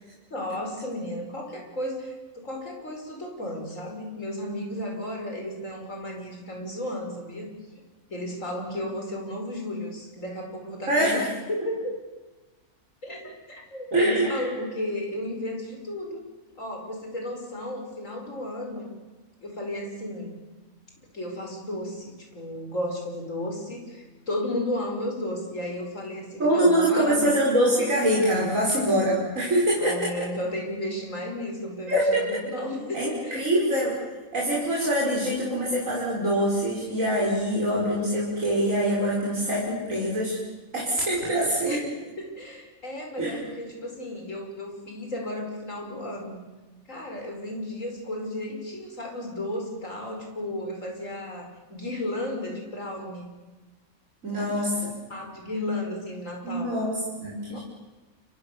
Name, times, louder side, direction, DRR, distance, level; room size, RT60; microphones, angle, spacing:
voice 1, 0.3-7.5 8.1-11.9 13.0-16.2 16.6-19.0 19.4-20.4 21.1-27.2 29.8-33.5 41.7-41.8 42.2-46.4 46.9-53.3 54.3-54.6 55.1-56.8 57.5-57.6, left 1 dB, 65° left, 2 dB, 5.8 m, -33 dB
voice 2, 10.9-11.2 13.9-14.4 26.4-30.1 31.9-32.2 32.9-34.0 34.3-40.4 40.7-41.8 43.2-43.4 54.2-55.0 56.4-57.6, right 1 dB, 70° right, -5 dB, 5.8 m, -24 dB
29.0 x 25.5 x 7.0 m, 1.2 s
omnidirectional pair, 1.4 m